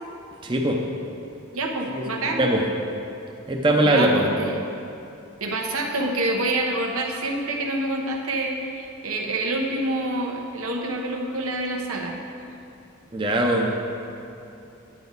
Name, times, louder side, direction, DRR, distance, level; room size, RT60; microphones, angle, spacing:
voice 1, 0.4-0.8 1.9-2.1 2.4-2.6 3.5-4.3 13.1-13.7, right 1 dB, 25° right, 0 dB, 0.6 m, -20 dB
voice 2, 1.5-2.4 3.8-4.5 5.4-12.2, right 2 dB, 85° right, 1 dB, 1.2 m, -27 dB
9.5 x 9.0 x 4.0 m, 2.7 s
head